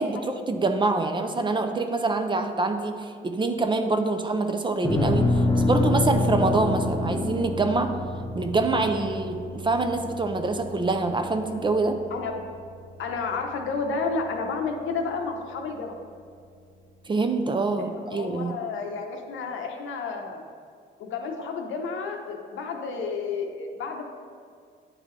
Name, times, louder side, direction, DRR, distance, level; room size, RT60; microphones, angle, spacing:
voice 1, 0.0-5.3 5.6-7.9 8.3-12.0 17.1-18.6, right 3 dB, 25° right, 6 dB, 0.4 m, -25 dB
sound 1, 4.8-9.3, left 3 dB, 20° left, 0.8 m, -26 dB
sound 2, 5.1-16.6 16.9-17.0, right 1 dB, 85° right, 0.7 m, -35 dB
voice 2, 12.1-12.4 13.0-15.9 17.8-20.4 21.0-24.1, left 4 dB, 75° left, 3 dB, 0.8 m, -31 dB
9.1 x 3.7 x 3.2 m, 2.2 s
cardioid pair, 90°, 20 cm